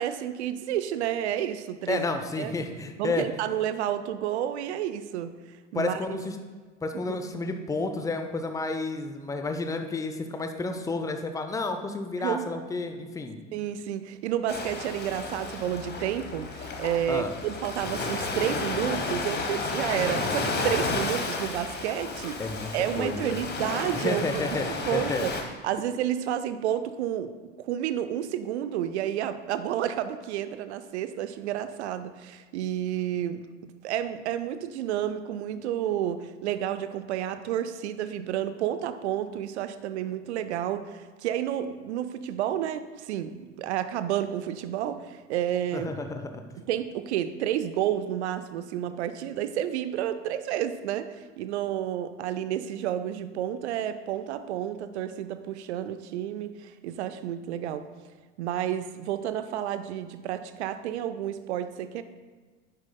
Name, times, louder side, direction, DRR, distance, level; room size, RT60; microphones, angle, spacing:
voice 1, 0.0-2.1 2.4-2.5 3.0-5.3 5.7-6.0 7.1-7.2 12.2-12.5 13.5-22.4 22.7-24.6 24.9-25.3 25.6-33.4 33.8-45.9 46.7-57.9 58.4-62.0, right 10 dB, 65° right, 11 dB, 0.6 m, -30 dB
voice 2, 1.9-3.2 5.7-6.4 6.8-13.4 17.1-17.3 22.4-23.4 23.9-25.2 45.7-46.2, left 3 dB, 10° left, 7 dB, 0.6 m, -31 dB
Ocean, 14.5-25.4, left 3 dB, 25° left, 1.2 m, -32 dB
9.6 x 7.5 x 2.2 m, 1.4 s
figure-of-eight pair, 70°, 37 cm